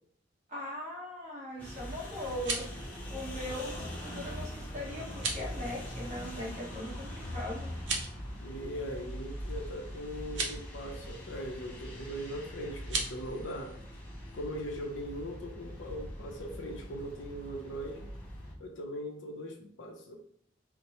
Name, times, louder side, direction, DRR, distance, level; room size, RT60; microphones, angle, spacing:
voice 1, 0.5-7.8, left 1 dB, 40° right, -4 dB, 1.2 m, -40 dB
sound 1, 1.6-18.5, equal, 10° left, 0.8 m, -42 dB
sound 2, 2.2-2.8 5.1-5.5 7.7-8.2 10.2-10.6 12.8-13.1, right 4 dB, 75° right, 0.7 m, -35 dB
voice 2, 8.4-13.7 14.3-18.1 18.6-20.2, equal, 90° left, 2 dB, 0.7 m, -40 dB
4.3 x 2.1 x 2.9 m, 0.64 s
head